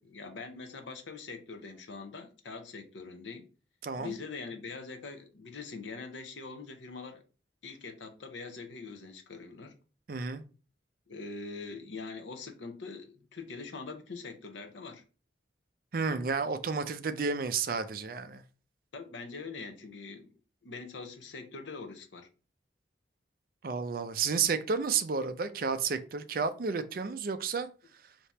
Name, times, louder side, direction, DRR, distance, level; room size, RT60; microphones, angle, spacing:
voice 1, 0.0-3.5 4.0-7.2 7.6-9.8 11.1-15.0 18.9-20.3 20.6-22.3, left 4 dB, 80° left, 0.7 m, -43 dB
voice 2, 3.8-4.1 10.1-10.4 15.9-18.4 23.6-27.7, right 5 dB, 50° right, 0.4 m, -31 dB
3.5 x 2.8 x 4.1 m
head